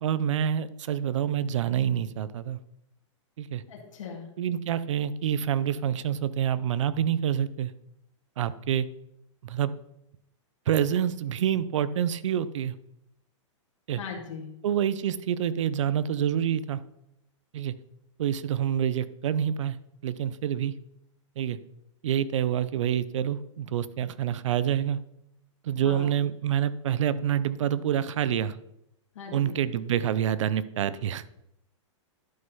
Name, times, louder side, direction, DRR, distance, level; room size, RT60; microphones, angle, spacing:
voice 1, 0.0-2.6 3.4-3.6 4.4-7.7 8.4-8.9 9.4-9.7 10.7-12.7 13.9-14.0 14.6-16.8 17.5-17.7 18.2-19.8 20.0-20.7 21.4-21.6 22.0-25.0 25.6-28.6 29.3-31.2, right 9 dB, 70° right, 16 dB, 0.7 m, -27 dB
voice 2, 3.7-4.3 14.0-14.5 25.8-26.1 29.2-29.6, left 6 dB, 75° left, -1 dB, 2.2 m, -39 dB
11.5 x 5.6 x 5.5 m, 0.82 s
hypercardioid pair, 150°, 16 cm